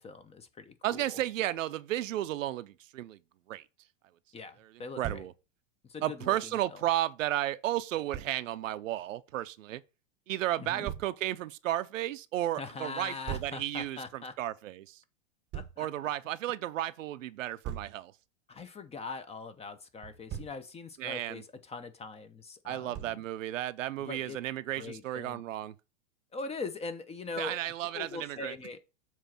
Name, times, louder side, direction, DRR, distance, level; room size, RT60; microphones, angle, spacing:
voice 1, 0.0-1.2 4.3-5.3 5.9-6.6 10.6-10.9 12.6-14.3 15.5-15.9 18.5-23.2 24.0-24.4 24.8-25.4 26.3-27.6 27.9-28.8, left 4 dB, 15° left, 0.8 m, -42 dB
voice 2, 0.8-3.2 3.5-3.6 4.6-5.3 6.0-9.8 10.3-15.0 15.8-18.1 21.0-21.4 22.6-25.8 27.4-28.5, right 13 dB, 80° right, 0.7 m, -33 dB
Thump thud, 5.0-5.3 8.1-8.3 10.8-11.1 13.3-13.6 15.5-15.8 17.6-18.0 20.0-20.6 22.9-23.3, right 10 dB, 30° right, 0.8 m, -39 dB
7.3 x 3.2 x 5.8 m
hypercardioid pair, 120°, 38 cm